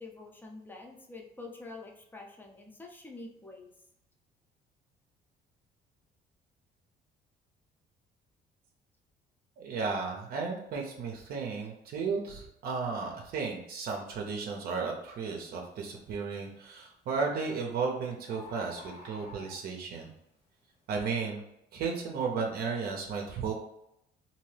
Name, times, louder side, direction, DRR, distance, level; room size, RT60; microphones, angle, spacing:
voice 1, 0.0-3.7 11.6-11.7, left 3 dB, 10° left, 1 dB, 0.6 m, -47 dB
voice 2, 9.6-20.1 20.9-21.4 21.7-23.5, right 5 dB, 65° right, 1 dB, 0.6 m, -34 dB
Bird, 15.0-15.2 15.8-16.2 17.3-17.4 17.6-17.7 17.9-18.0 18.3-20.0 20.6-20.7, left 3 dB, 85° left, 1.0 m, -50 dB
2.7 x 2.7 x 3.2 m, 0.80 s
cardioid pair, 110°, 17 cm